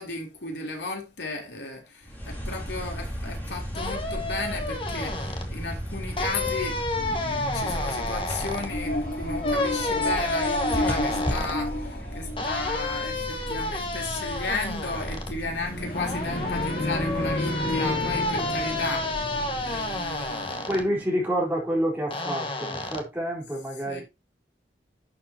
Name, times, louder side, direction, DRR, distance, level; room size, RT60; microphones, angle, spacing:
voice 1, 0.0-21.0 23.8-24.0, left 3 dB, 75° left, 3.3 m, -35 dB
sound 1, 2.0-20.5, equal, 10° left, 3.4 m, -35 dB
sound 2, 3.7-5.4 6.2-8.7 9.4-11.6 12.4-15.3 15.9-20.8 22.1-23.0, left 2 dB, 30° left, 1.6 m, -30 dB
sound 3, 8.5-12.9 15.5-20.4, left 1 dB, 55° left, 2.8 m, -31 dB
voice 2, 20.7-24.0, equal, 10° right, 4.2 m, -28 dB
11.0 x 7.2 x 2.9 m
head